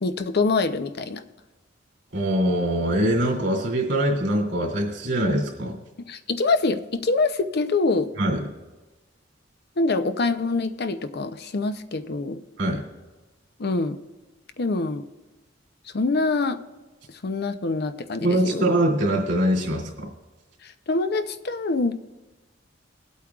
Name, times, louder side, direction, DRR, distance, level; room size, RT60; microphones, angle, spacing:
voice 1, 0.0-1.2 6.1-8.1 9.8-12.4 13.6-14.0 14.6-15.0 15.9-16.6 17.2-18.7 20.6-21.9, left 3 dB, 55° left, 10 dB, 0.6 m, -25 dB
voice 2, 2.1-5.8 8.2-8.4 12.6-12.8 18.2-20.1, right 1 dB, 65° right, -2 dB, 2.5 m, -23 dB
22.5 x 8.5 x 2.4 m, 1.2 s
head